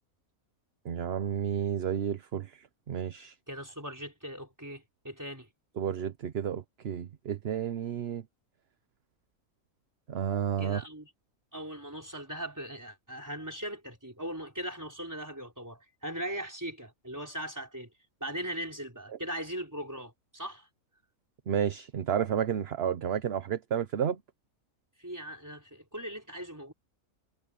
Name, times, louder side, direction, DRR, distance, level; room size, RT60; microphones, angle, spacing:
voice 1, 0.8-2.5 2.9-3.3 5.8-8.2 10.1-10.8 21.5-24.2, right 9 dB, 50° right, 0.9 m, -31 dB
voice 2, 3.5-5.5 10.6-11.1 11.5-17.9 18.2-20.7 25.0-26.7, equal, 10° right, 4.7 m, -39 dB
omnidirectional pair, 1.5 m